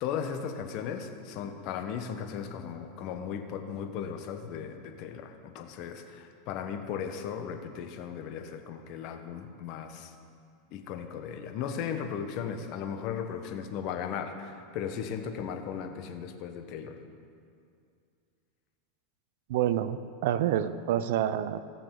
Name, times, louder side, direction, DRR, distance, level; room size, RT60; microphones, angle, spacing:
voice 1, 0.0-10.1 10.7-17.0, left 7 dB, 55° left, 6 dB, 1.1 m, -36 dB
voice 2, 19.5-21.6, right 11 dB, 70° right, 14 dB, 0.5 m, -28 dB
17.0 x 6.8 x 3.9 m, 2.4 s
hypercardioid pair, 110°, 0 cm